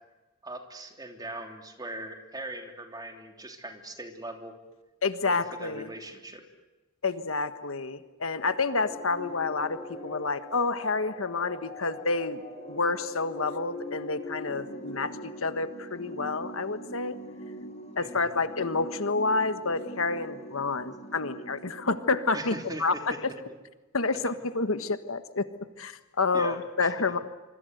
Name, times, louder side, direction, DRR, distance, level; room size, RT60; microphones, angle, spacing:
voice 1, 0.4-4.6 5.2-6.4 18.0-18.4 22.3-23.2 26.3-26.9, right 1 dB, 20° right, 4 dB, 3.2 m, -40 dB
voice 2, 5.0-5.9 7.0-12.4 12.7-17.2 18.0-23.1 23.9-25.5 25.8-27.2, left 3 dB, 70° left, 10 dB, 1.5 m, -29 dB
sound 1, 8.8-22.5, equal, 35° left, 4.7 m, -43 dB
25.0 x 25.0 x 8.1 m, 1.1 s
head